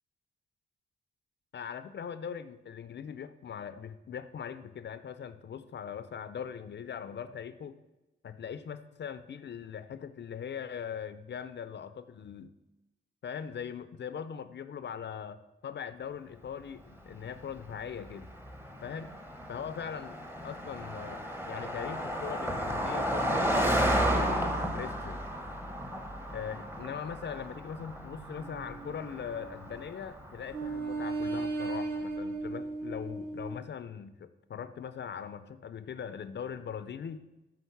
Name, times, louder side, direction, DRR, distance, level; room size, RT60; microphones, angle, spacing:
voice 1, 1.5-7.8 8.2-12.5 13.2-18.3 18.8-19.2 19.5-25.2 26.3-37.2, left 7 dB, 55° left, 13 dB, 0.5 m, -41 dB
Car passing by, 17.1-30.9, equal, 10° right, 1.0 m, -33 dB
sound 1, 28.4-30.0 30.5-33.6, right 3 dB, 50° right, 1.5 m, -36 dB
8.5 x 4.0 x 6.9 m, 1.0 s
cardioid pair, 75°, 21 cm